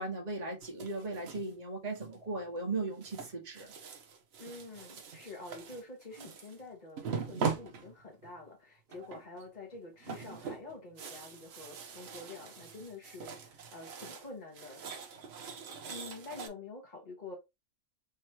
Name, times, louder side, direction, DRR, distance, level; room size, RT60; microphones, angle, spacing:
voice 1, 0.0-3.7, right 2 dB, 30° right, 1.3 m, -37 dB
sound 1, 0.6-1.5 2.0-2.4 3.0-6.6 7.0-8.4 8.9-9.4 9.7-14.3 14.5-16.5, right 5 dB, 55° right, 0.9 m, -41 dB
voice 2, 4.4-14.8 15.9-17.4, left 3 dB, 30° left, 1.5 m, -47 dB
3.7 x 3.1 x 2.9 m
omnidirectional pair, 1.4 m